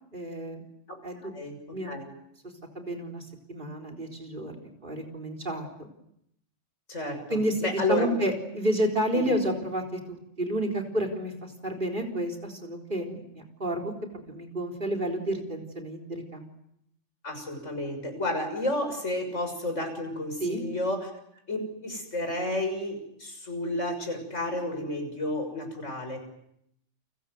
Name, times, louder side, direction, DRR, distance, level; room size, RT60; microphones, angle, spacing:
voice 1, 0.1-0.6 1.0-1.3 1.7-1.9 2.7-5.9 7.3-13.9 14.3-16.5 20.4-20.6, right 1 dB, 40° right, 6 dB, 4.2 m, -30 dB
voice 2, 1.3-2.1 6.9-8.1 9.1-9.3 17.2-21.1 21.5-26.2, left 1 dB, 75° left, 5 dB, 7.0 m, -31 dB
30.0 x 24.5 x 7.9 m, 0.76 s
omnidirectional pair, 1.3 m